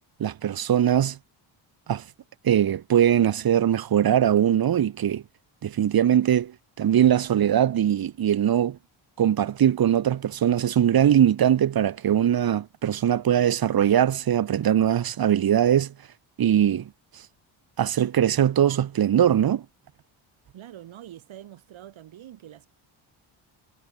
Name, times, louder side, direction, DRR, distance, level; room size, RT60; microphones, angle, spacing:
voice 1, 0.2-1.2 1.9-2.0 2.4-5.2 5.6-6.5 6.8-8.8 9.2-15.9 16.4-16.9 17.8-19.6, right 10 dB, 50° right, 1.5 m, -21 dB
voice 2, 20.5-22.7, right 12 dB, 75° right, 7.4 m, -45 dB
cardioid pair, 130°, 48 cm